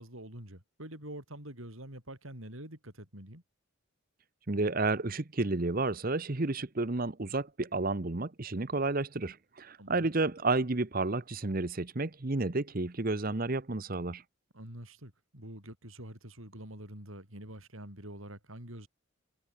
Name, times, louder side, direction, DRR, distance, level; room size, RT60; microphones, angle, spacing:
voice 1, 0.0-3.4 9.8-10.1 14.5-18.9, right 1 dB, 75° right, 7.1 m, -46 dB
voice 2, 4.5-14.2, right 3 dB, 45° right, 1.0 m, -31 dB
head